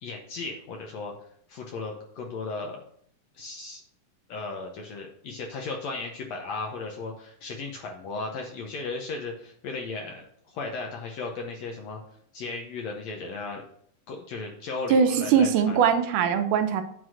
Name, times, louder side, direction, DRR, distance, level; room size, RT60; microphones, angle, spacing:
voice 1, 0.0-1.1 1.5-2.8 3.3-3.8 4.3-12.0 12.3-13.6 14.1-15.8, left 3 dB, 70° left, 1 dB, 1.8 m, -36 dB
voice 2, 14.9-16.8, right 7 dB, 80° right, 8 dB, 2.3 m, -21 dB
9.5 x 4.0 x 6.3 m, 0.67 s
omnidirectional pair, 3.8 m